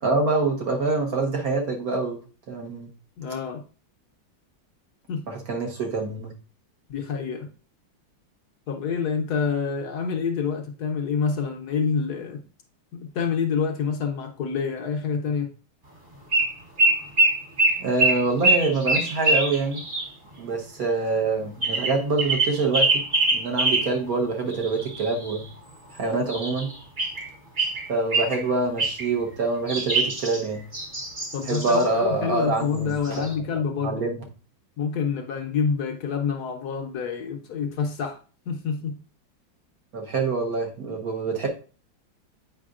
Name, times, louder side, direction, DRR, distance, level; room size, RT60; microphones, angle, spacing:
voice 1, 0.0-2.2 2.5-2.9 5.3-6.3 17.8-19.8 20.4-23.0 23.3-25.4 25.9-26.7 27.9-30.6 31.5-33.2 33.8-34.2 39.9-41.5, right 3 dB, 55° right, 1.4 m, -25 dB
voice 2, 3.2-3.6 5.1-5.2 6.9-7.5 8.7-12.4 12.9-15.5 31.3-34.0 34.8-38.2 38.5-39.0, left 6 dB, 65° left, 1.2 m, -27 dB
sound 1, 16.3-16.5 16.8-20.1 21.6-23.9 24.5-25.5 26.3-27.3 27.6-28.4 28.8-29.1 29.7-31.9 32.7-32.8 33.1-33.3, right 2 dB, 35° right, 1.0 m, -24 dB
7.9 x 5.1 x 2.4 m
omnidirectional pair, 2.0 m